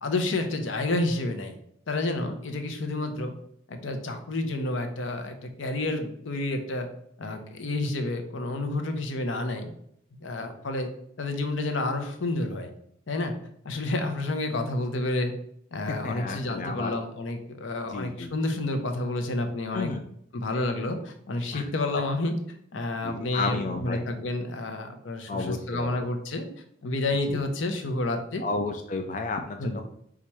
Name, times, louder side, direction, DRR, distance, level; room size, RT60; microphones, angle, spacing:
voice 1, 0.0-1.5 1.9-3.3 3.7-6.9 7.2-9.7 10.2-10.9 11.2-12.7 13.1-13.3 13.6-15.3 15.7-19.9 20.3-22.3 22.7-26.5 26.8-28.4 29.6-29.8, left 2 dB, 85° left, 6 dB, 0.7 m, -29 dB
voice 2, 15.9-17.0 17.9-18.3 19.7-20.0 21.5-21.6 23.0-24.0 25.3-25.9 27.3-27.4 28.4-29.8, left 3 dB, 40° left, 4 dB, 0.3 m, -32 dB
4.2 x 2.4 x 4.5 m, 0.70 s
head